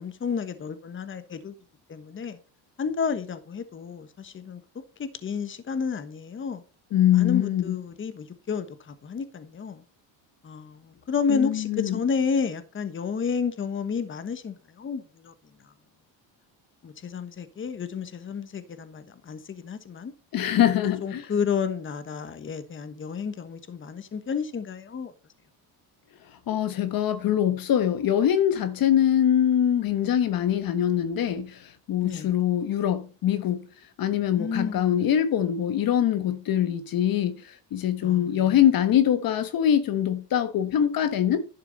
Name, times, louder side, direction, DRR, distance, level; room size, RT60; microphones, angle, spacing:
voice 1, 0.0-1.5 1.9-2.4 2.8-4.6 5.0-6.6 7.1-9.8 10.4-15.3 16.8-20.1 20.8-25.1 32.0-32.3 34.4-35.1 38.0-38.4, left 6 dB, 25° left, 1.3 m, -31 dB
voice 2, 6.9-7.8 11.3-12.0 20.3-21.3 26.5-33.7 34.0-41.5, left 10 dB, 50° left, 1.2 m, -23 dB
11.5 x 6.9 x 4.0 m
cardioid pair, 120°, 44 cm